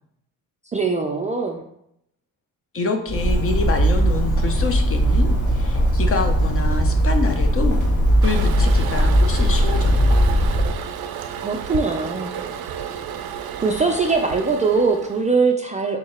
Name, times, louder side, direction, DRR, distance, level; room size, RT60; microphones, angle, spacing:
voice 1, 0.7-1.6 11.4-12.3 13.6-16.0, right 4 dB, 20° right, 2 dB, 0.3 m, -21 dB
voice 2, 2.7-7.8 8.2-10.2, left 4 dB, 40° left, 5 dB, 0.6 m, -27 dB
Bird, 3.1-10.7, equal, 55° left, 1.5 m, -18 dB
Toilet flush, 8.2-15.3, right 8 dB, 85° right, 0.5 m, -32 dB
3.8 x 2.8 x 4.2 m, 0.75 s
cardioid pair, 105°, 36 cm